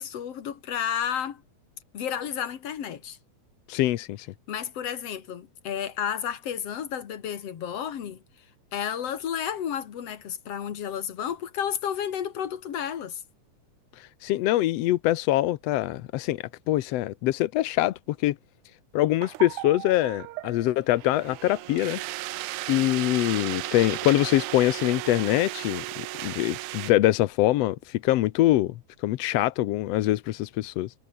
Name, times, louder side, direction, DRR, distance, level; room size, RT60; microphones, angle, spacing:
voice 1, 0.0-1.4 1.9-3.2 4.5-8.2 8.7-13.2, left 9 dB, 55° left, 2.7 m, -32 dB
voice 2, 3.7-4.3 14.0-18.3 18.9-22.0 22.7-30.9, left 15 dB, 70° left, 1.6 m, -24 dB
sound 1, 19.2-26.9, right 18 dB, 85° right, 2.2 m, -35 dB
omnidirectional pair, 3.5 m